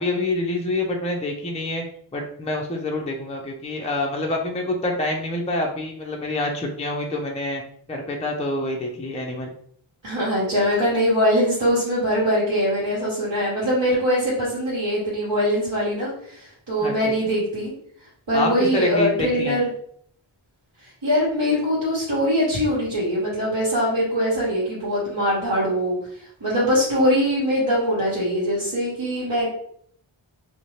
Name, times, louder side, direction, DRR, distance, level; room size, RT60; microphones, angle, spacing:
voice 1, 0.0-1.8 2.1-7.6 7.9-9.5 16.8-16.9 18.3-19.6, left 2 dB, 15° left, 1 dB, 0.4 m, -26 dB
voice 2, 10.0-17.7 18.3-19.7 21.0-26.0 26.4-29.5, equal, 65° right, -7 dB, 1.1 m, -22 dB
2.6 x 2.1 x 3.0 m, 0.64 s
wide cardioid pair, 40°, 49 cm